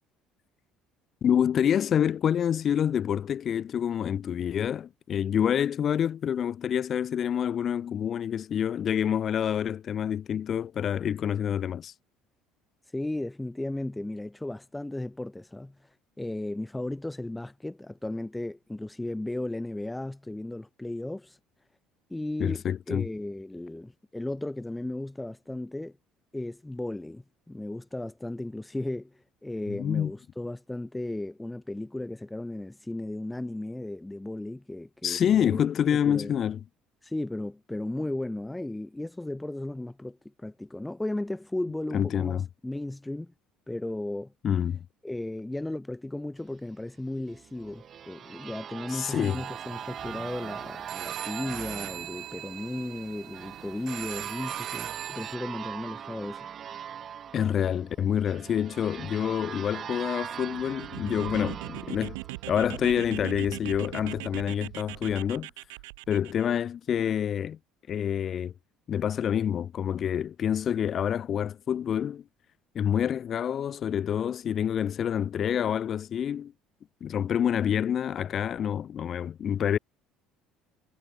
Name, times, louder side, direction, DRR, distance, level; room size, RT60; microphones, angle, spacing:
voice 1, 1.2-11.9 22.4-23.1 29.7-30.1 35.0-36.6 41.9-42.5 44.4-44.8 48.9-49.4 57.3-62.2 62.5-65.5 66.1-67.6 67.9-68.5 68.9-72.2 72.7-76.5 77.0-79.8, left 9 dB, 50° left, 1.6 m, -27 dB
voice 2, 12.8-21.4 22.1-26.0 26.3-35.6 35.9-36.3 37.0-43.3 43.7-44.3 45.0-56.5, left 1 dB, 10° left, 1.9 m, -35 dB
sound 1, 47.3-63.0, right 8 dB, 50° right, 1.9 m, -41 dB
sound 2, 49.2-55.4, right 14 dB, 65° right, 1.5 m, -41 dB
sound 3, 60.4-66.5, right 25 dB, 85° right, 0.7 m, -40 dB
hypercardioid pair, 75°, 0 cm